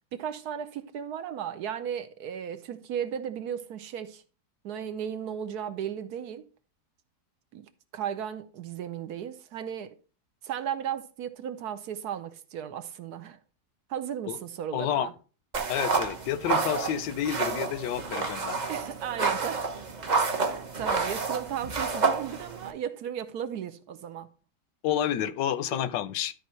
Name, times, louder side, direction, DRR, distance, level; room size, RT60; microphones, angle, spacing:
voice 1, 0.1-4.2 4.6-6.5 7.5-10.0 10.4-13.4 13.9-15.1 18.7-19.7 20.4-24.3 25.7-25.9, right 9 dB, 70° right, 1.2 m, -35 dB
voice 2, 14.7-15.1 15.7-18.6 24.8-26.3, left 10 dB, 90° left, 1.3 m, -29 dB
sound 1, 15.5-22.7, right 4 dB, 40° right, 0.7 m, -29 dB
12.5 x 4.3 x 4.3 m
omnidirectional pair, 1.9 m